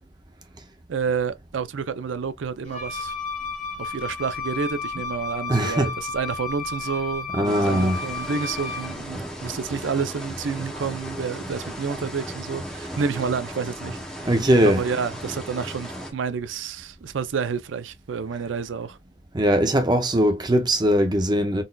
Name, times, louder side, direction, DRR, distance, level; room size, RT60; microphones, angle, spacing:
voice 1, 0.9-3.1 3.8-14.3 14.6-19.0, right 5 dB, 85° right, 0.5 m, -29 dB
Wind instrument woodwind instrument, 2.6-9.0, left 4 dB, 40° left, 1.3 m, -33 dB
voice 2, 5.5-5.9 7.3-8.0 14.2-14.8 19.3-21.6, equal, 25° right, 0.5 m, -20 dB
sound 1, 7.4-16.1, equal, 5° left, 0.9 m, -36 dB
3.9 x 2.5 x 2.2 m
head